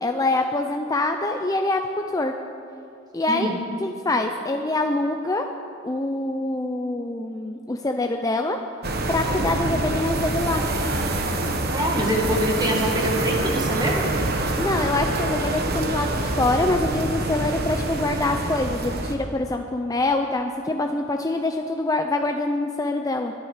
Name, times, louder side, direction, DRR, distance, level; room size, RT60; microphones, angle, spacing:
voice 1, 0.0-1.8 2.1-2.3 3.1-3.5 3.8-5.5 5.8-8.6 9.1-10.6 14.6-23.3, left 2 dB, 15° left, 4 dB, 0.5 m, -25 dB
voice 2, 3.3-3.6 11.7-14.2, equal, 20° right, 0 dB, 2.1 m, -24 dB
sound 1, 8.8-19.1, right 2 dB, 50° right, 1.2 m, -26 dB
22.0 x 11.0 x 4.9 m, 2.6 s
head